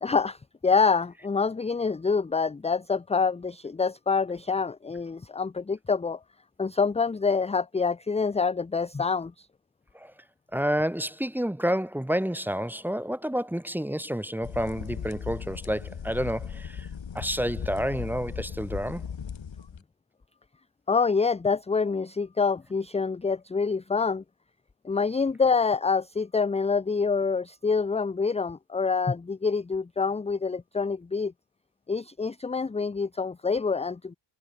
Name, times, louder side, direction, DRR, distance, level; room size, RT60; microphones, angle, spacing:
voice 1, 0.0-0.4 0.6-6.2 6.6-9.5 20.9-24.2 24.8-31.3 31.9-34.1, left 5 dB, 15° left, 0.4 m, -26 dB
voice 2, 10.5-16.9 17.1-19.0, equal, 5° right, 0.8 m, -29 dB
sound 1, 14.4-19.8, left 7 dB, 65° left, 4.3 m, -37 dB
cardioid pair, 65°, 49 cm